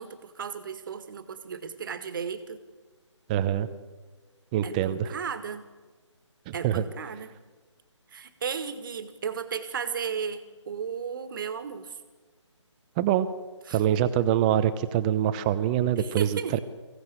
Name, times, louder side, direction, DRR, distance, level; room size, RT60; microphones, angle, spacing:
voice 1, 0.0-2.6 4.6-5.7 6.5-7.4 8.1-12.0 13.7-13.8 16.0-16.6, right 6 dB, 45° right, 10 dB, 1.9 m, -35 dB
voice 2, 3.3-3.7 4.5-5.1 6.5-6.8 13.0-13.3 13.7-16.6, right 11 dB, 15° right, 14 dB, 0.8 m, -25 dB
23.5 x 16.5 x 8.1 m, 1.3 s
figure-of-eight pair, 155°, 16 cm